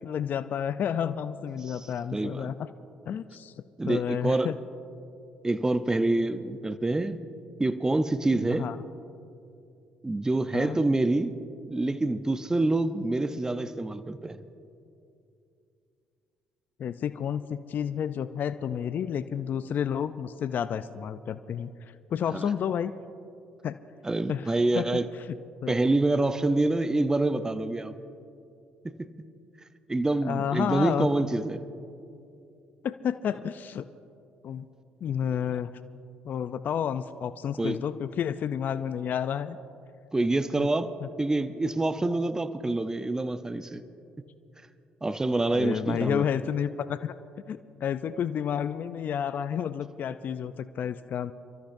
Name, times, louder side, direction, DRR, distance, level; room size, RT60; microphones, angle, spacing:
voice 1, 0.0-2.7 3.1-3.5 3.9-4.6 8.5-8.8 10.5-10.8 16.8-21.7 22.1-22.9 23.6-23.8 24.3-24.5 24.8-25.0 25.6-25.8 30.2-31.1 32.8-33.8 34.4-34.7 35.0-35.7 36.2-39.6 45.5-47.1 47.5-51.3, left 8 dB, 55° left, 12 dB, 0.4 m, -30 dB
voice 2, 2.1-2.5 3.8-4.5 5.4-7.2 7.6-8.7 10.0-11.4 11.7-14.4 22.3-22.5 24.0-25.1 25.7-27.9 28.8-29.1 29.9-31.6 37.6-37.8 40.1-43.8 45.0-46.3, right 2 dB, 15° right, 11 dB, 0.7 m, -26 dB
29.5 x 13.0 x 2.7 m, 2.6 s
supercardioid pair, 60°, 4 cm